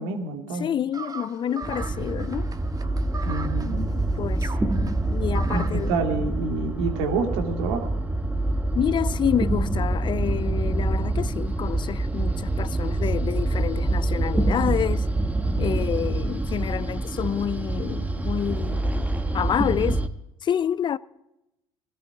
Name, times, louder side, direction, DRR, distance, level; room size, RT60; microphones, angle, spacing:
voice 1, 0.0-0.7 3.2-3.9 5.5-7.9 15.5-15.8, right 3 dB, 75° right, 2.5 m, -28 dB
voice 2, 0.6-2.5 3.9-6.0 8.7-15.1 15.6-20.1 20.4-21.0, left 9 dB, 35° left, 0.4 m, -28 dB
sound 1, 0.9-5.9, right 4 dB, 25° right, 1.5 m, -39 dB
sound 2, 1.6-20.1, right 2 dB, 10° right, 1.1 m, -26 dB
17.5 x 13.5 x 4.8 m
hypercardioid pair, 80°, 13 cm